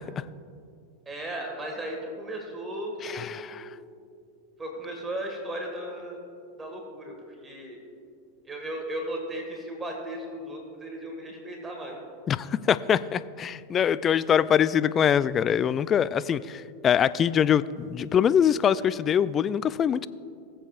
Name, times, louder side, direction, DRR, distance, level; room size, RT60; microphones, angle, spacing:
voice 1, 1.1-3.7 4.6-6.2 6.6-7.8 8.5-12.0, right 1 dB, 20° right, 1 dB, 1.8 m, -36 dB
voice 2, 3.0-3.6 12.3-20.1, left 8 dB, 30° left, 17 dB, 0.3 m, -23 dB
19.5 x 7.7 x 2.5 m, 2.4 s
hypercardioid pair, 100°, 0 cm